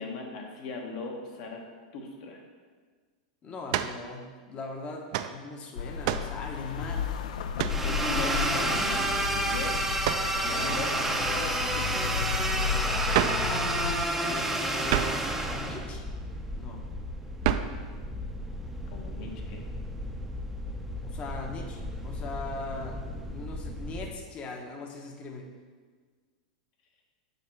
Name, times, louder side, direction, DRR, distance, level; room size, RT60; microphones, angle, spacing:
voice 1, 0.0-1.6 1.9-2.4 7.8-9.8 10.2-11.0 11.3-12.2 18.9-19.6, left 3 dB, 60° left, 1 dB, 1.2 m, -38 dB
voice 2, 3.4-7.1 8.2-8.6 10.3-11.3 13.3-16.1 16.6-16.9 21.0-25.5, left 3 dB, 30° left, 3 dB, 0.8 m, -41 dB
sound 1, 3.7-4.0 5.1-5.4 6.0-6.4 7.6-7.9 10.0-10.3 13.1-13.5 14.9-15.3 17.4-17.8, right 11 dB, 55° right, 0.3 m, -28 dB
sound 2, 5.8-14.0, left 7 dB, 80° left, 0.4 m, -33 dB
sound 3, 7.7-24.1, right 1 dB, 5° right, 0.5 m, -31 dB
5.5 x 3.7 x 5.7 m, 1.5 s
supercardioid pair, 130°, 4 cm